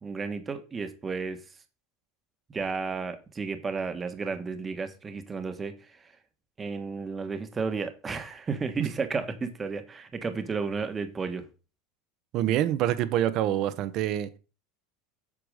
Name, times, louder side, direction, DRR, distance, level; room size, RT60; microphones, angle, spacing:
voice 1, 0.0-1.6 2.5-6.1 6.6-11.5, right 4 dB, 20° right, 1.4 m, -33 dB
voice 2, 12.3-14.3, right 12 dB, 50° right, 1.1 m, -26 dB
8.6 x 4.8 x 6.6 m
supercardioid pair, 120°, 0 cm